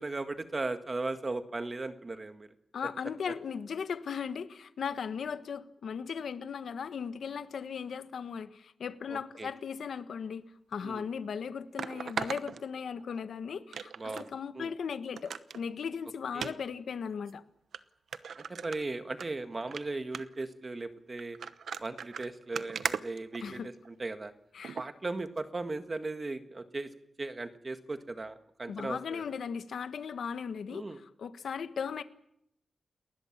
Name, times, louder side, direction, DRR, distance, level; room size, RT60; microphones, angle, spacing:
voice 1, 0.0-2.5 9.1-9.5 10.8-11.0 14.0-14.7 16.3-16.6 18.5-21.4 21.8-24.3 24.7-26.9 27.2-29.2 30.7-31.0, right 3 dB, 25° right, 8 dB, 1.6 m, -37 dB
voice 2, 2.7-17.4 23.4-23.7 24.5-24.8 28.7-32.0, left 6 dB, 85° left, 11 dB, 1.4 m, -37 dB
sound 1, 10.7-10.8 11.8-13.2 13.7-14.3 14.7-14.8 15.2-15.6 16.3-16.5 17.3-17.4 17.7-17.8 18.1-19.3 19.6-19.8 20.1-20.4 21.2-23.9 24.6-24.9 25.4-25.5, right 6 dB, 80° right, 1.0 m, -38 dB
29.5 x 20.0 x 7.4 m, 0.77 s
wide cardioid pair, 175°, 0 cm